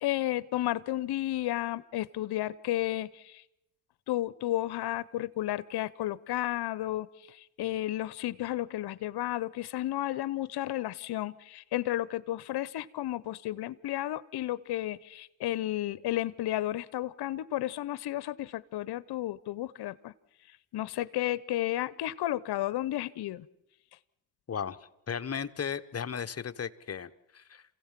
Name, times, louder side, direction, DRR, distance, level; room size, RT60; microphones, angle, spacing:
voice 1, 0.0-3.4 4.1-20.1 20.5-23.5, left 14 dB, 70° left, 18 dB, 0.8 m, -32 dB
voice 2, 24.5-24.8 25.1-27.6, left 7 dB, 40° left, 11 dB, 1.0 m, -35 dB
27.5 x 16.0 x 7.4 m, 0.90 s
cardioid pair, 70°, 40 cm